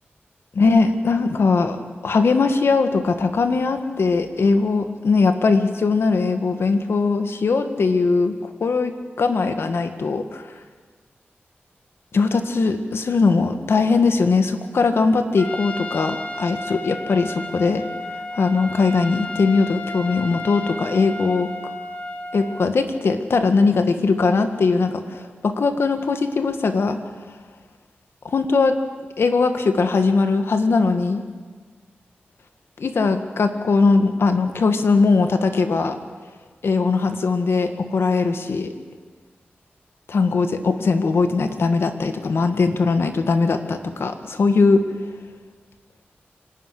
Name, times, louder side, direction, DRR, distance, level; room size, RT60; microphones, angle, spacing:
voice 1, 0.5-1.8 2.0-10.4 12.1-17.8 18.3-21.5 22.3-27.0 28.2-28.7 29.2-31.2 32.8-36.0 36.6-38.7 40.1-44.8, left 4 dB, 80° left, 7 dB, 1.8 m, -20 dB
Trumpet, 15.4-22.7, left 2 dB, 35° left, 1.9 m, -33 dB
25.0 x 12.5 x 10.0 m, 1.5 s
wide cardioid pair, 70°, 4 cm